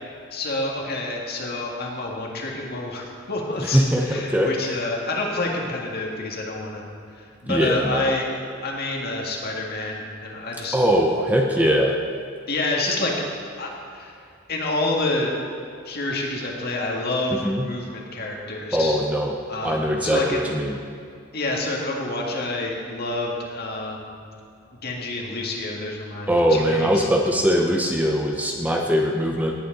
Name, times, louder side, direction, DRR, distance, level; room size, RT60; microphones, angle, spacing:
voice 1, 0.3-6.8 7.2-8.3 8.6-10.8 12.5-13.1 13.6-14.2 14.5-15.4 15.9-19.0 19.5-20.4 21.3-24.1 24.8-27.1, left 2 dB, 50° left, -1 dB, 1.8 m, -28 dB
voice 2, 3.6-4.5 7.5-8.1 10.7-11.9 17.4-17.7 18.7-19.4 19.6-20.8 26.3-29.5, equal, 10° right, 1 dB, 0.7 m, -21 dB
18.0 x 8.4 x 3.9 m, 2.4 s
head